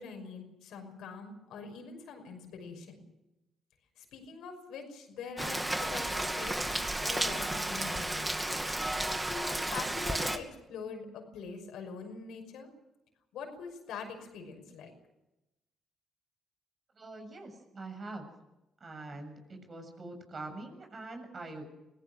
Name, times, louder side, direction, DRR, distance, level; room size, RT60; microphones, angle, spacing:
voice 1, 0.0-3.0 4.0-8.3 9.2-12.7 13.3-14.9, left 5 dB, 75° left, 4 dB, 5.8 m, -44 dB
Rain, 5.4-10.4, right 1 dB, 15° right, 2.6 m, -33 dB
voice 2, 17.0-18.3 18.8-21.6, right 2 dB, 45° right, 5 dB, 7.2 m, -44 dB
25.0 x 17.0 x 6.4 m, 0.95 s
supercardioid pair, 55°, 0 cm